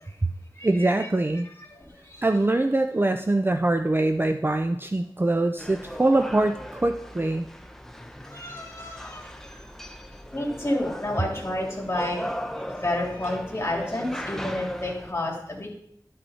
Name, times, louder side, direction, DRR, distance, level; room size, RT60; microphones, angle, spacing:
voice 1, 0.6-1.5 2.2-7.5, right 2 dB, 25° right, 7 dB, 0.4 m, -23 dB
voice 2, 1.8-2.2 8.2-9.6 10.3-12.3 12.7-15.7, left 1 dB, 35° left, -2 dB, 2.9 m, -30 dB
sound 1, 5.6-15.1, equal, 5° left, 0.8 m, -38 dB
11.5 x 5.4 x 4.3 m, 0.71 s
wide cardioid pair, 60°, 8 cm